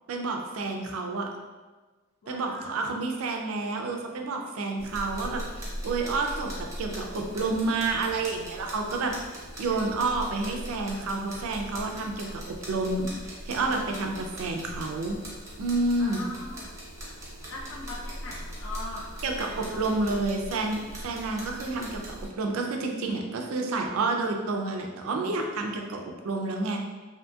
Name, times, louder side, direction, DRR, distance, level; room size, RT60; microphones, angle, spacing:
voice 1, 0.1-1.3 2.3-9.1 9.6-15.2 15.6-16.3 19.2-26.8, right 3 dB, 75° right, 2 dB, 0.4 m, -29 dB
voice 2, 2.2-2.8 16.0-16.6 17.5-20.2, left 2 dB, 65° left, -4 dB, 0.5 m, -41 dB
sound 1, 4.8-22.3, equal, 15° right, 0.6 m, -40 dB
2.7 x 2.7 x 2.2 m, 1.3 s
head